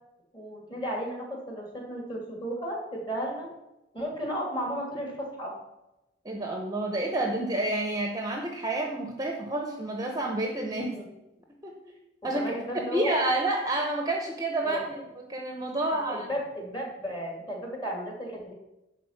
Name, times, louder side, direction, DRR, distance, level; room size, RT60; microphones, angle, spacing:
voice 1, 0.3-3.5 3.9-5.5 10.7-11.1 12.3-13.1 14.6-14.8 15.9-18.5, equal, 25° left, -1 dB, 2.7 m, -34 dB
voice 2, 6.2-11.0 11.6-11.9 12.2-15.0 15.3-16.3, right 2 dB, 20° right, 2 dB, 0.8 m, -29 dB
11.0 x 4.1 x 7.4 m, 0.95 s
head